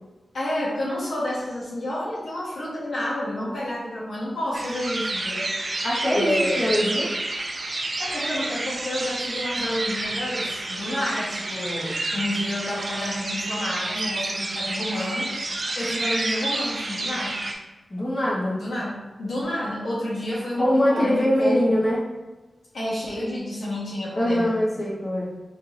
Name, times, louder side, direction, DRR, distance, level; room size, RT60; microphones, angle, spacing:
voice 1, 0.3-5.8 6.1-6.7 8.0-15.3 15.7-17.4 18.5-21.8 22.7-24.7, left 1 dB, 85° left, -7 dB, 1.2 m, -30 dB
sound 1, 4.5-17.5, right 2 dB, 50° right, 0.5 m, -29 dB
voice 2, 5.8-7.1 17.9-18.6 20.6-22.0 24.2-25.3, equal, 35° left, -6 dB, 1.2 m, -22 dB
4.7 x 3.0 x 2.6 m, 1.1 s
wide cardioid pair, 90°, 0 cm